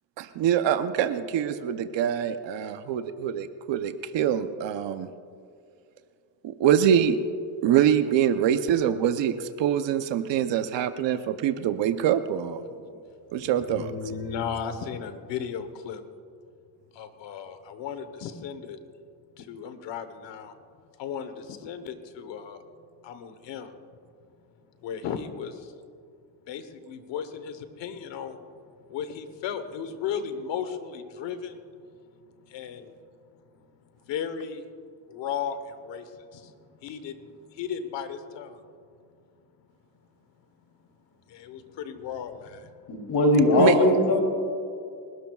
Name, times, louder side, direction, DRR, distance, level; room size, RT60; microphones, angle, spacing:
voice 1, 0.2-5.1 6.4-7.2 7.6-12.6 13.3-13.9 43.6-43.7, right 9 dB, 85° right, 10 dB, 0.8 m, -24 dB
voice 2, 13.4-16.0 16.9-18.8 19.4-20.5 21.0-22.6 23.0-23.7 24.8-25.7 26.5-31.6 32.4-33.0 33.5-33.6 34.0-34.6 35.1-38.6 41.3-42.7, left 7 dB, 90° left, 10 dB, 1.2 m, -35 dB
voice 3, 42.9-44.2, left 2 dB, 60° left, 1 dB, 3.1 m, -20 dB
29.5 x 12.5 x 2.4 m, 2.3 s
cardioid pair, 90°, 43 cm